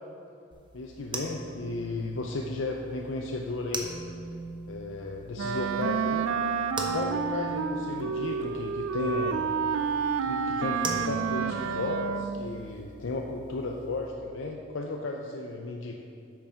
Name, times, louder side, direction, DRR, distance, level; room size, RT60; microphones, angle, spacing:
sound 1, 0.5-14.1, right 2 dB, 25° right, 0.8 m, -41 dB
voice 1, 0.7-3.9 4.7-6.3 6.9-9.5 10.2-16.0, left 2 dB, 70° left, 1 dB, 0.6 m, -34 dB
Wind instrument woodwind instrument, 5.4-12.5, right 5 dB, 90° right, 0.4 m, -29 dB
8.5 x 6.1 x 5.7 m, 2.5 s
head